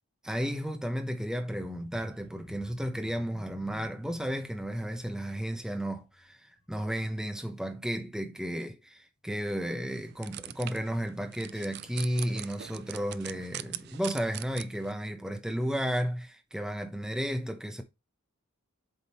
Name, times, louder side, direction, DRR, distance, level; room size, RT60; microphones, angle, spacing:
voice 1, 0.2-17.8, equal, 5° right, 0.8 m, -33 dB
sound 1, 1.5-7.2 7.6-7.9 8.2-8.3, left 1 dB, 60° left, 3.1 m, -53 dB
sound 2, 9.9-14.9, right 12 dB, 50° right, 0.3 m, -43 dB
7.8 x 3.7 x 4.2 m
head